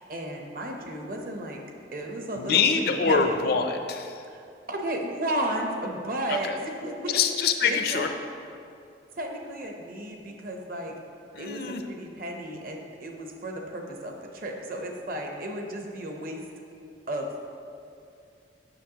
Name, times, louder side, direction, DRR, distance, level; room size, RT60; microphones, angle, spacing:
voice 1, 0.0-1.6 1.9-3.4 4.3-7.2 7.6-8.1 9.2-10.9 11.4-16.4 17.1-17.3, right 1 dB, 50° right, 2 dB, 0.8 m, -33 dB
voice 2, 2.3-4.2 6.3-6.4 7.1-8.1 11.3-11.8, left 5 dB, 60° left, 6 dB, 0.5 m, -24 dB
7.9 x 6.4 x 2.9 m, 2.5 s
head